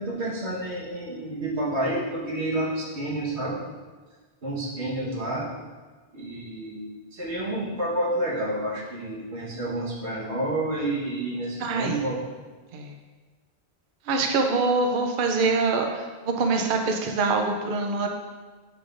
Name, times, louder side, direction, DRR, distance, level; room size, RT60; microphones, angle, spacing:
voice 1, 0.0-3.6 4.4-5.5 6.1-12.2, right 1 dB, 90° right, -5 dB, 1.6 m, -29 dB
voice 2, 11.6-12.0 12.7-12.9 14.1-16.1 16.4-18.1, right 3 dB, 60° right, 3 dB, 0.7 m, -24 dB
8.0 x 4.9 x 2.5 m, 1.4 s
omnidirectional pair, 1.1 m